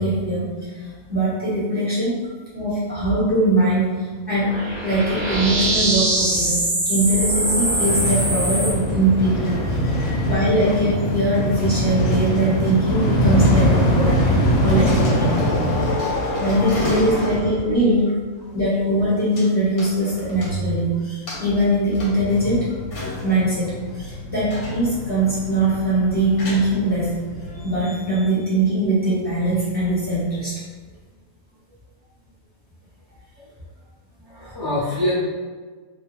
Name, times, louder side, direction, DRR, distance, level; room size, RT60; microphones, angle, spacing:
voice 1, 0.0-2.2 2.5-4.5 4.8-15.6 16.1-18.1 18.5-22.7 23.2-27.1 27.5-30.5, right 1 dB, 10° right, -10 dB, 0.8 m, -21 dB
sound 1, 4.4-8.7, right 1 dB, 50° right, 0.5 m, -22 dB
sound 2, 7.8-15.9, equal, 90° left, 1.0 m, -21 dB
sound 3, 9.4-14.3 14.6-17.9 18.2-18.3 19.4-19.5 19.8-20.8 21.3-27.7, left 2 dB, 65° left, 0.9 m, -30 dB
voice 2, 34.2-35.2, left 1 dB, 25° left, -12 dB, 0.6 m, -26 dB
2.4 x 2.3 x 3.0 m, 1.4 s
omnidirectional pair, 1.4 m